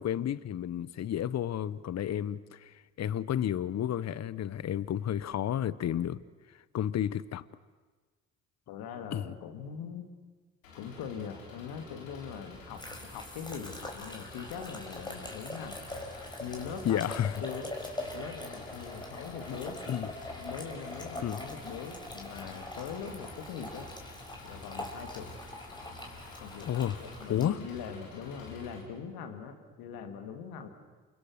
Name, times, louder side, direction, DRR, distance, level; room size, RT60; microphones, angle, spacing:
voice 1, 0.0-6.2 6.7-7.4 9.1-9.3 16.8-17.4 19.9-20.1 21.2-21.4 26.6-27.0 27.3-27.6, left 10 dB, 45° left, 19 dB, 0.9 m, -31 dB
voice 2, 8.7-10.1 10.7-15.8 16.4-17.7 18.1-19.8 20.4-23.9 24.4-25.3 26.4-30.7, left 7 dB, 65° left, 6 dB, 2.8 m, -42 dB
Engine, 10.6-28.8, left 3 dB, 85° left, 4.2 m, -50 dB
sound 1, 12.5-27.5, left 1 dB, 10° left, 5.4 m, -43 dB
29.0 x 24.5 x 6.7 m, 1.4 s
hypercardioid pair, 50°, 39 cm